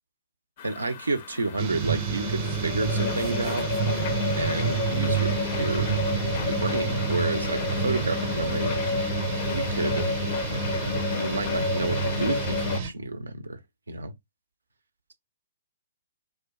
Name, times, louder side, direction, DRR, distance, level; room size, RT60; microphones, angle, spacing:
sound 1, 0.6-12.8, left 5 dB, 45° left, 0.4 m, -30 dB
voice 1, 0.6-3.7 4.4-5.9 6.4-8.7 9.5-10.1 10.8-13.6 13.9-14.1, right 3 dB, 80° right, 0.5 m, -30 dB
sound 2, 1.6-12.9, right 7 dB, 40° right, 0.6 m, -29 dB
2.5 x 2.1 x 3.5 m
figure-of-eight pair, 120°, 0 cm